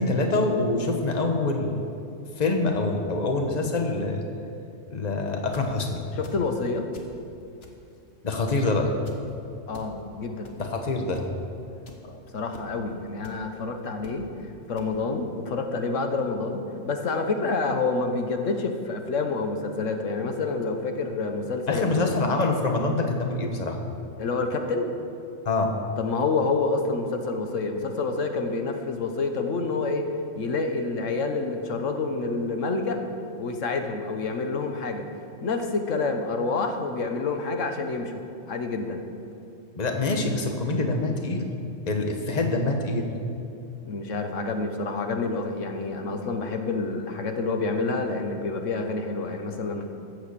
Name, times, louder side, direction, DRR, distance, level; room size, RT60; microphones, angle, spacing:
voice 1, 0.0-1.8 2.4-4.2 4.9-6.0 8.2-8.9 10.6-11.2 21.7-23.8 25.4-25.7 39.7-41.5 41.9-43.1, left 2 dB, 35° left, 3 dB, 1.3 m, -25 dB
sound 1, 5.3-5.7 6.2-6.6 6.9-7.2 7.6-8.0 8.3-8.6 9.1-9.2 9.7-9.9 10.4-10.7 11.1-11.3 11.9-12.0 12.5-12.7 13.2-13.3 14.0-14.2 14.8-14.9, left 4 dB, 55° left, 1.6 m, -47 dB
voice 2, 6.1-6.9 9.7-10.5 12.0-22.1 24.2-24.9 26.0-30.0 30.3-33.0 33.4-35.1 35.4-38.2 38.5-39.0 43.8-49.9, left 3 dB, 85° left, 5 dB, 1.4 m, -28 dB
14.5 x 8.5 x 6.9 m, 2.7 s
omnidirectional pair, 1.3 m